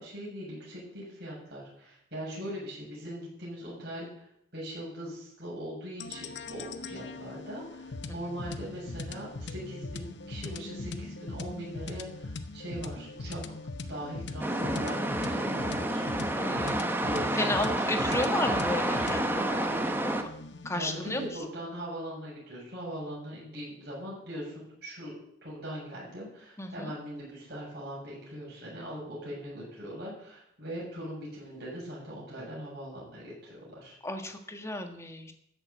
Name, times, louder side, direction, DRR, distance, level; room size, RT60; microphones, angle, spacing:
voice 1, 0.0-4.2 4.5-13.4 13.9-16.1 16.5-16.7 17.0-17.5 17.8-18.3 20.7-25.1 25.4-34.0, equal, 55° right, -6 dB, 7.3 m, -40 dB
sound 1, 6.0-21.4, left 3 dB, 60° left, 0.9 m, -40 dB
sound 2, 14.4-20.2, right 1 dB, 10° right, 1.0 m, -29 dB
voice 2, 16.3-16.9 17.4-20.3 20.6-21.3 26.6-26.9 34.0-35.3, left 1 dB, 15° left, 5 dB, 1.5 m, -34 dB
14.0 x 7.0 x 8.2 m, 0.73 s
head